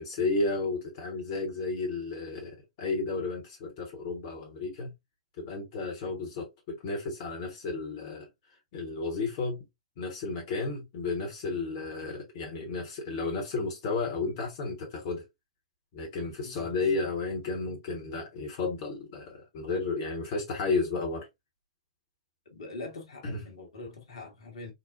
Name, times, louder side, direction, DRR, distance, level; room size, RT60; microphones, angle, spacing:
voice 1, 0.0-4.9 5.4-8.3 8.7-9.7 10.0-15.2 15.9-21.3 23.2-23.4, left 3 dB, 40° left, 0.9 m, -32 dB
voice 2, 16.4-16.7 22.5-24.7, left 3 dB, 65° left, 1.1 m, -43 dB
4.0 x 2.1 x 2.4 m
figure-of-eight pair, 110°, 3 cm